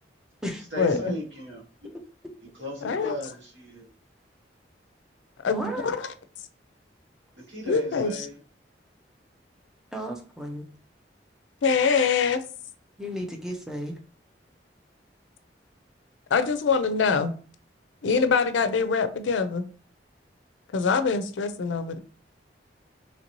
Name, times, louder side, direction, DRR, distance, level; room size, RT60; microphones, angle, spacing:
voice 1, 0.7-1.6 2.6-3.9 7.5-8.4, left 1 dB, 85° right, -2 dB, 1.2 m, -36 dB
voice 2, 2.8-3.2 5.4-6.1 7.7-8.1 11.6-12.4 16.3-17.3 18.0-19.6 20.7-22.0, left 5 dB, 85° left, 10 dB, 0.4 m, -24 dB
voice 3, 5.5-5.9 9.9-10.6 13.0-13.9, equal, 5° right, 2 dB, 0.5 m, -34 dB
3.1 x 2.6 x 2.9 m, 0.39 s
head